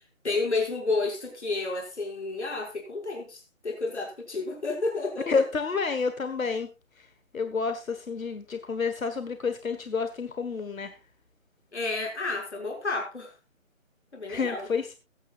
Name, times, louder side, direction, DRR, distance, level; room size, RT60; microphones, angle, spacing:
voice 1, 0.2-5.4 11.7-13.3 14.1-14.7, left 3 dB, 55° left, 2 dB, 6.1 m, -31 dB
voice 2, 5.3-6.7 7.0-7.1 7.3-10.9 14.3-15.0, left 5 dB, 85° left, 9 dB, 1.5 m, -29 dB
21.5 x 9.2 x 2.5 m, 0.26 s
figure-of-eight pair, 175°, 40 cm